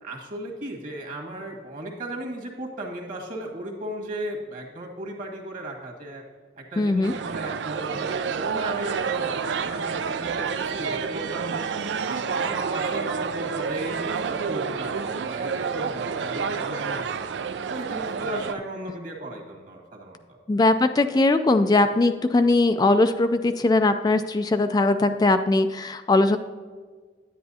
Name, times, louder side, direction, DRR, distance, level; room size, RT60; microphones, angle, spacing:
voice 1, 0.0-6.2 6.6-11.7 12.0-17.3 17.7-20.4, right 1 dB, 50° right, 0 dB, 1.8 m, -36 dB
voice 2, 6.8-7.1 20.5-26.4, left 2 dB, 25° left, 9 dB, 0.3 m, -20 dB
sound 1, 7.0-18.5, right 6 dB, 85° right, 0.4 m, -29 dB
10.0 x 9.3 x 2.8 m, 1.5 s
head